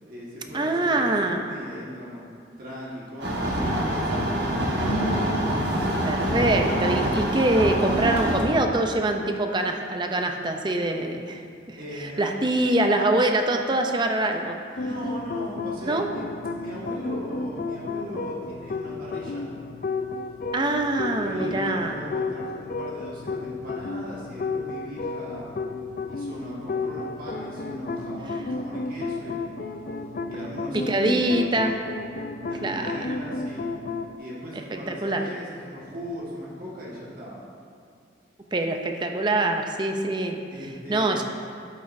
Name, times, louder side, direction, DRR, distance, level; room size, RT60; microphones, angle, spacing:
voice 1, 0.0-2.2 2.6-5.2 11.8-12.5 14.8-16.2 16.5-19.5 21.1-25.5 26.1-29.5 30.3-31.5 32.4-33.7 34.1-37.4 40.5-41.2, equal, 50° right, -6 dB, 1.7 m, -38 dB
voice 2, 0.5-1.5 6.0-14.6 15.9-16.1 20.5-22.0 30.7-31.7 32.6-32.9 34.7-35.2 38.5-40.4 40.9-41.2, right 2 dB, 25° right, 4 dB, 0.5 m, -24 dB
sound 1, 3.2-8.4, equal, 70° right, 1.4 m, -25 dB
sound 2, 14.8-34.2, left 3 dB, 45° left, 0.4 m, -32 dB
11.5 x 8.4 x 2.7 m, 2.4 s
head